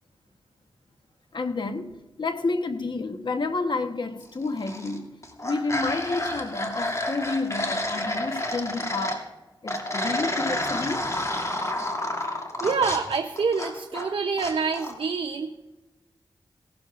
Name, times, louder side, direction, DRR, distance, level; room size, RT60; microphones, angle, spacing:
voice 1, 1.3-9.3 9.6-11.0, left 3 dB, 55° left, 1.1 m, -30 dB
sound 1, 4.4-5.0 5.2-9.2 9.7-14.1 14.4-14.9, left 1 dB, 35° left, 2.4 m, -30 dB
voice 2, 12.6-15.5, right 5 dB, 75° right, 0.7 m, -26 dB
18.0 x 13.0 x 2.5 m
cardioid pair, 45°, 9 cm